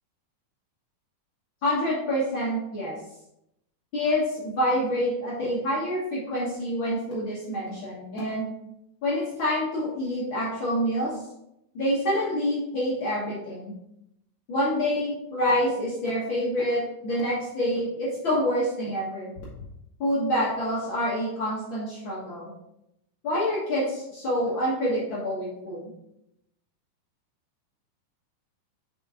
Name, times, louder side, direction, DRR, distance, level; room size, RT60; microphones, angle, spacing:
voice 1, 1.6-2.9 3.9-8.5 9.0-11.1 11.7-13.7 14.5-19.3 20.0-22.5 23.2-25.8, equal, 50° left, -7 dB, 1.7 m, -27 dB
5.8 x 5.1 x 3.6 m, 0.82 s
omnidirectional pair, 3.7 m